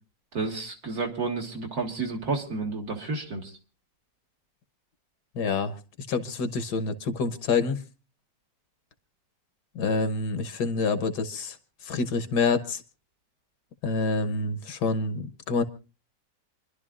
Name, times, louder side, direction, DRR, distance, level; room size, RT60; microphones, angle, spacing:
voice 1, 0.3-3.5, right 3 dB, 55° right, 2.2 m, -31 dB
voice 2, 5.3-5.8 6.1-7.8 9.7-11.6 11.8-12.8 13.8-15.6, left 4 dB, 65° left, 1.5 m, -27 dB
28.0 x 11.5 x 2.4 m
omnidirectional pair, 1.9 m